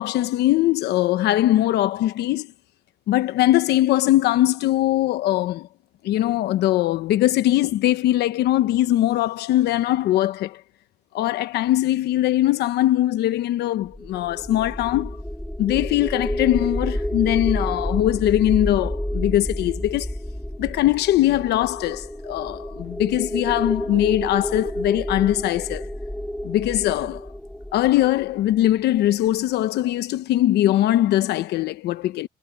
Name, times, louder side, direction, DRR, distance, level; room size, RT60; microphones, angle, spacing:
voice 1, 0.0-2.5 3.1-5.7 6.0-10.6 11.1-15.2 15.6-20.1 20.6-25.9 26.4-27.3 27.7-32.3, left 14 dB, 75° left, 1.1 m, -21 dB
sound 1, 13.8-29.0, left 1 dB, 5° left, 3.2 m, -30 dB
cardioid pair, 110°, 17 cm